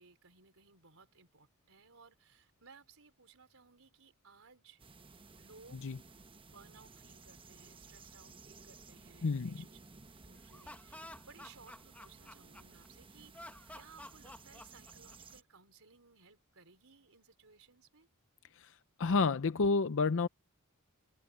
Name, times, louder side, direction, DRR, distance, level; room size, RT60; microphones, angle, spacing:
voice 1, 0.0-4.8 5.3-5.9 6.5-9.9 10.2-13.5 13.7-18.1, right 4 dB, 65° right, 5.0 m, -61 dB
sound 1, 4.8-15.4, right 4 dB, 25° right, 1.0 m, -57 dB
voice 2, 9.2-9.6 18.6-18.7 19.0-20.3, left 4 dB, 60° left, 0.6 m, -29 dB
Laughter, 10.4-12.9 13.3-15.4, left 1 dB, 5° left, 1.3 m, -51 dB
head